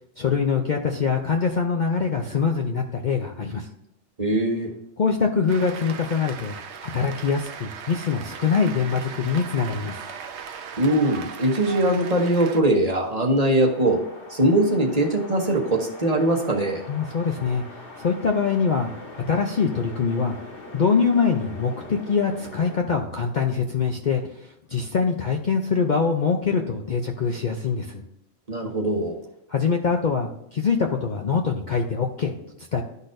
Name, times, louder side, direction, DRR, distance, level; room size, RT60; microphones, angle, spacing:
voice 1, 0.2-3.7 5.0-6.5 6.8-10.0 16.9-17.6 18.0-20.4 20.7-28.0 29.5-32.8, left 5 dB, 50° left, 2 dB, 0.6 m, -24 dB
voice 2, 4.2-4.7 10.8-14.0 14.3-16.8 28.5-29.2, right 1 dB, 35° right, 1 dB, 1.1 m, -21 dB
Cheering / Applause, 5.5-12.6, right 6 dB, 70° right, 0.9 m, -38 dB
sound 1, 13.6-22.8, left 2 dB, 65° left, 1.7 m, -42 dB
12.0 x 4.0 x 2.6 m, 0.82 s
omnidirectional pair, 1.3 m